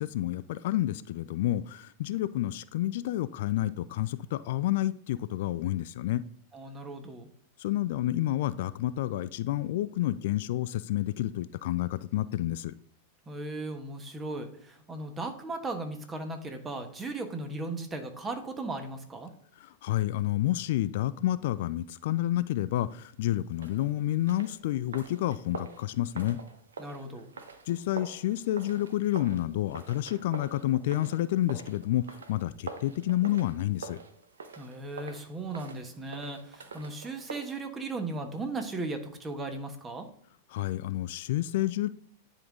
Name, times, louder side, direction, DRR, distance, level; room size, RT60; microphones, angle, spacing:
voice 1, 0.0-6.2 7.6-12.7 19.6-26.4 27.7-34.0 40.5-41.9, left 14 dB, 60° left, 15 dB, 0.3 m, -29 dB
voice 2, 6.5-7.3 13.3-19.3 26.8-27.3 34.6-40.1, right 2 dB, 20° right, 6 dB, 1.2 m, -37 dB
sound 1, 23.5-37.6, right 4 dB, 80° right, 0.9 m, -46 dB
10.0 x 3.8 x 3.7 m, 0.62 s
hypercardioid pair, 100°, 0 cm